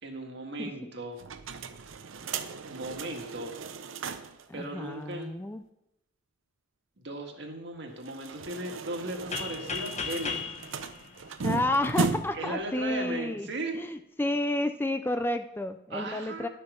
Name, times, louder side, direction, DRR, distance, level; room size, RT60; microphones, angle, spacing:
voice 1, 0.0-1.2 2.7-3.5 4.5-5.3 7.0-10.4 12.3-13.8 15.9-16.5, right 2 dB, 60° right, 2 dB, 1.8 m, -37 dB
voice 2, 0.6-0.9 4.5-5.6 11.4-13.5 13.7-16.5, left 1 dB, 10° left, 9 dB, 0.4 m, -31 dB
sound 1, 1.2-4.4 4.8-4.9 5.1-5.2 8.0-12.5, right 4 dB, 75° right, 0.7 m, -36 dB
sound 2, 9.3-12.1, left 5 dB, 35° left, 1.0 m, -36 dB
12.0 x 6.8 x 5.4 m, 0.84 s
head